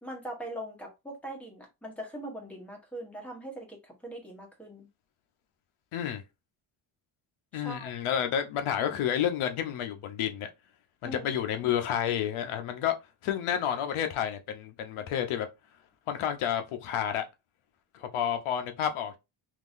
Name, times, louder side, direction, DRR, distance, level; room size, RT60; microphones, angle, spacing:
voice 1, 0.0-4.9 7.5-7.9 11.0-11.3, right 1 dB, 5° left, 1.1 m, -41 dB
voice 2, 5.9-6.2 7.5-10.5 11.0-13.0 13.2-15.5 16.1-17.2 17.9-19.2, left 9 dB, 85° left, 0.9 m, -30 dB
3.7 x 2.8 x 2.5 m
cardioid pair, 140°, 48 cm